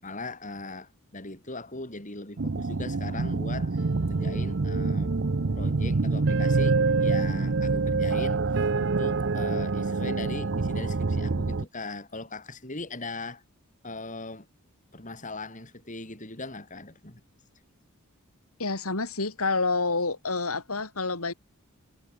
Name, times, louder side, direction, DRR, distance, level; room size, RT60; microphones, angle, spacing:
voice 1, 0.0-5.2 5.5-13.4 13.8-14.5 14.9-17.2, left 2 dB, 35° left, 4.5 m, -39 dB
sound 1, 2.4-11.6, right 3 dB, 55° right, 0.7 m, -26 dB
voice 2, 18.6-21.3, left 3 dB, 75° left, 3.3 m, -28 dB
head